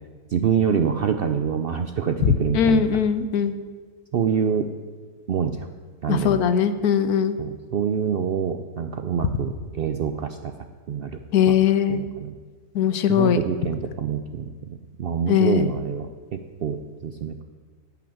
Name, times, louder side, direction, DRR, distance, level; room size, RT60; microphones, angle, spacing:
voice 1, 0.3-3.0 4.1-4.7 5.3-5.7 6.0-6.4 7.4-10.5 10.9-11.2 11.5-11.6 11.9-12.4 13.1-17.4, right 7 dB, 70° right, 8 dB, 0.5 m, -26 dB
voice 2, 2.2-3.5 6.1-7.4 11.3-12.0 12.7-13.4 15.3-15.8, left 8 dB, 85° left, 12 dB, 1.2 m, -20 dB
11.5 x 5.9 x 8.7 m, 1.5 s
omnidirectional pair, 1.6 m